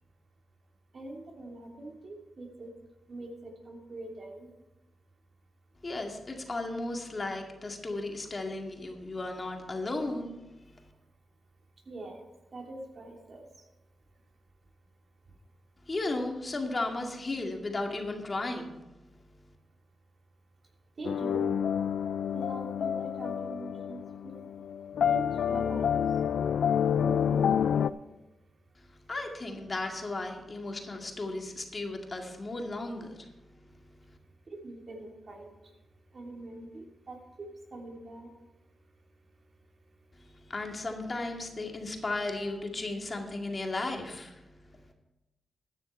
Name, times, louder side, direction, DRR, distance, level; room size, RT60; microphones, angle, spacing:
voice 1, 0.9-2.7 3.1-4.5 11.9-12.2 12.5-13.4 21.0-21.5 22.3-24.3 25.0-26.0 26.9-27.8 34.5-35.5 36.1-38.3, right 2 dB, 55° right, 1 dB, 2.9 m, -43 dB
voice 2, 5.8-10.4 10.7-10.8 15.9-18.8 28.8-33.3 40.2-44.4, left 2 dB, 40° left, 2 dB, 2.1 m, -35 dB
sound 1, 21.0-27.9, left 8 dB, 80° left, 0.3 m, -28 dB
13.5 x 9.7 x 4.4 m, 1.0 s
cardioid pair, 65°, 0 cm